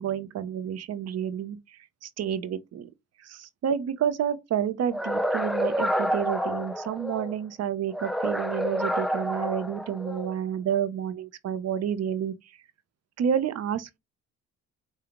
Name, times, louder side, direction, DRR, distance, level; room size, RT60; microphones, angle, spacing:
voice 1, 0.0-1.6 2.0-2.9 3.2-12.3 13.2-14.0, right 8 dB, 55° right, 0.7 m, -29 dB
sound 1, 4.9-7.3 7.9-10.3, equal, ahead, 0.4 m, -29 dB
5.1 x 2.3 x 2.9 m
cardioid pair, 90°, 30 cm